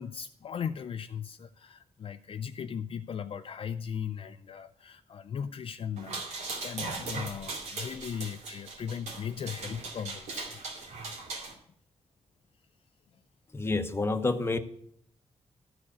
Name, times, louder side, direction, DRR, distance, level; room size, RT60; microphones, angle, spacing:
voice 1, 0.0-10.6 11.1-11.3, left 7 dB, 55° left, 9 dB, 0.4 m, -38 dB
sound 1, 6.0-11.5, right 3 dB, 90° right, 2.4 m, -39 dB
voice 2, 13.5-14.6, left 3 dB, 20° left, 7 dB, 0.9 m, -28 dB
13.0 x 4.7 x 8.4 m, 0.65 s
wide cardioid pair, 130°, 11 cm